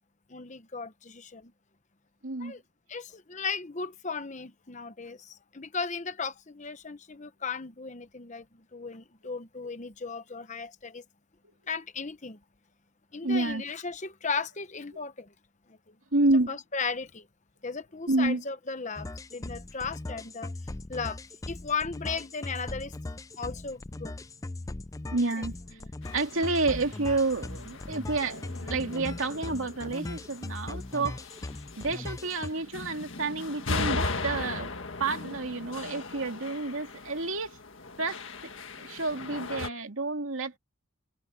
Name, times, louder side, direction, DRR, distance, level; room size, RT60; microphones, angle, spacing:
voice 1, 0.3-1.5 2.4-2.6 2.9-11.0 11.7-12.4 13.1-15.3 15.7-15.9 16.5-17.3 17.6-20.5 20.9-21.2 21.5-22.9 23.4-24.1 25.4-25.5 25.8-25.9, left 5 dB, 35° left, 1.0 m, -36 dB
voice 2, 2.2-2.6 13.2-13.6 16.1-16.6 18.1-18.4 25.1-25.5 26.1-31.2 31.8-34.7 35.0-37.6 38.0-38.2 38.8-40.6, right 3 dB, 70° right, 2.5 m, -29 dB
sound 1, 19.0-32.5, left 2 dB, 15° left, 0.4 m, -39 dB
sound 2, 26.0-39.7, left 3 dB, 60° left, 1.8 m, -38 dB
head